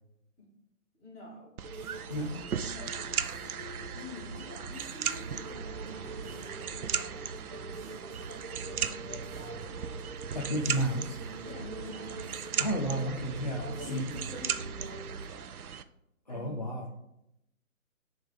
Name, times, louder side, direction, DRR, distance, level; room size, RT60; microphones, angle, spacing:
voice 1, 1.0-1.6 2.6-7.2 7.5-10.1 11.4-12.6 13.6-15.7 16.3-16.8, left 3 dB, 10° left, -12 dB, 2.1 m, -48 dB
sound 1, 1.6-15.3, right 2 dB, 30° right, 1.0 m, -44 dB
sound 2, 1.6-15.8, right 8 dB, 90° right, 0.6 m, -37 dB
voice 2, 10.3-11.2 12.6-14.0 16.3-16.8, right 1 dB, 30° left, -1 dB, 0.6 m, -32 dB
10.5 x 3.6 x 3.7 m, 0.82 s
hypercardioid pair, 170°, 43 cm